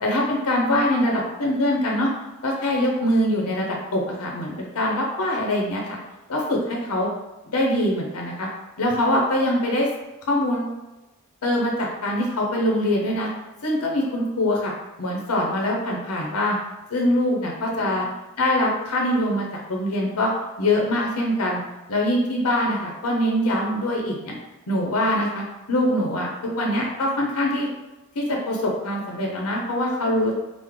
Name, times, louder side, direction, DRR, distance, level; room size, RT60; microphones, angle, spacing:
voice 1, 0.0-2.1 2.4-6.0 6.3-7.1 7.5-8.5 8.8-9.9 10.3-10.7 11.4-13.3 13.6-14.7 15.0-16.6 16.9-18.0 18.4-20.3 20.6-21.6 21.9-24.3 24.7-27.7 28.2-30.4, left 1 dB, 90° left, 0 dB, 0.6 m, -23 dB
3.1 x 2.0 x 3.5 m, 1.0 s
head